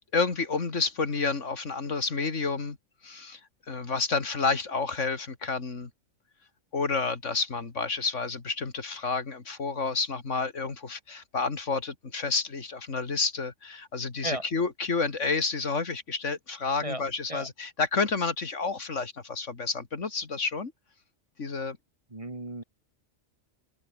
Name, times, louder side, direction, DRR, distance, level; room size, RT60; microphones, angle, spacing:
voice 1, 0.1-2.8 3.0-3.4 3.7-5.9 6.7-20.7 21.4-21.8, left 4 dB, 80° left, 2.7 m, -30 dB
voice 2, 22.1-22.6, right 1 dB, 25° right, 1.8 m, -34 dB
open air
omnidirectional pair, 1.2 m